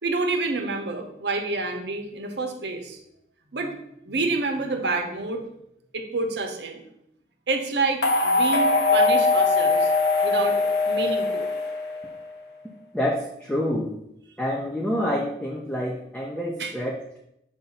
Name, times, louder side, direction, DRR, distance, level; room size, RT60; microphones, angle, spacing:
voice 1, 0.0-3.0 3.5-3.7 4.0-5.4 5.9-6.8 7.5-9.9 10.2-11.5 16.6-16.7, right 3 dB, 75° right, 4 dB, 0.9 m, -28 dB
sound 1, 8.0-12.2, left 3 dB, 75° left, 1.0 m, -21 dB
voice 2, 12.9-13.9 14.4-17.2, equal, 5° left, -1 dB, 0.6 m, -27 dB
7.1 x 2.7 x 5.4 m, 0.79 s
head